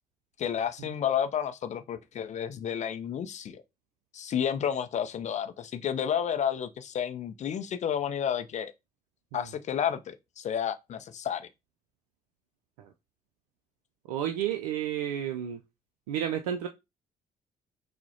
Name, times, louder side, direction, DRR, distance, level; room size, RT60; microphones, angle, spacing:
voice 1, 0.4-3.6 4.1-8.7 9.3-11.5, left 8 dB, 35° left, 0.4 m, -31 dB
voice 2, 14.1-15.6 16.1-16.7, right 10 dB, 70° right, 0.4 m, -31 dB
5.9 x 2.1 x 2.8 m
figure-of-eight pair, 45°, 20 cm